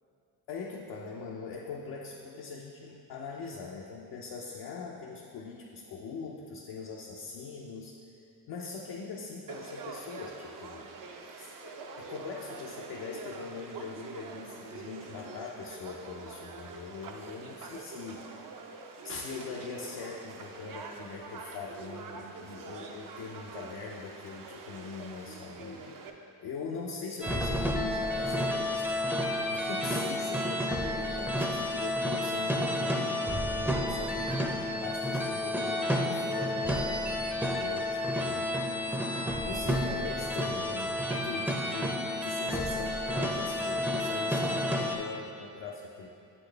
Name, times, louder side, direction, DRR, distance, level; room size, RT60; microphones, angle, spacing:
voice 1, 0.5-8.0 8.5-10.9 11.2-18.4 19.0-26.0 26.4-33.2 33.8-38.5 39.4-46.1, left 4 dB, 70° left, -2 dB, 0.7 m, -41 dB
Conversation / Crowd, 9.5-26.1, right 4 dB, 50° right, 0.6 m, -45 dB
sound 1, 27.2-45.0, left 1 dB, 5° right, 0.6 m, -30 dB
7.6 x 4.3 x 3.3 m, 2.5 s
supercardioid pair, 60°, 41 cm